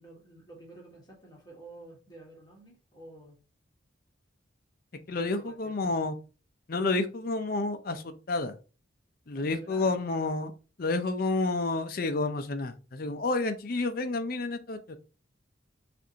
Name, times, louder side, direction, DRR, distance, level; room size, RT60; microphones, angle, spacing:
voice 1, 0.0-3.4 5.1-6.1 9.3-9.9, right 1 dB, 20° left, -2 dB, 1.3 m, -51 dB
voice 2, 5.1-6.2 6.7-8.5 9.3-10.5 10.8-15.0, left 3 dB, 45° left, 9 dB, 0.5 m, -30 dB
6.1 x 2.6 x 2.8 m, 0.34 s
head